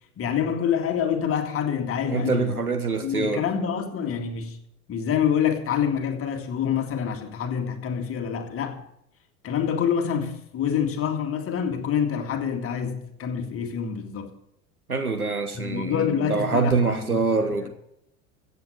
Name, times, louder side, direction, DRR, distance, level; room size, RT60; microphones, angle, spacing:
voice 1, 0.2-2.6 3.0-4.6 4.9-8.8 9.4-14.3 15.5-17.7, left 8 dB, 30° left, 2.2 m, -27 dB
voice 2, 2.1-3.4 14.9-17.7, right 4 dB, 90° right, 1.5 m, -25 dB
15.0 x 8.5 x 6.4 m
figure-of-eight pair, 80°, 43 cm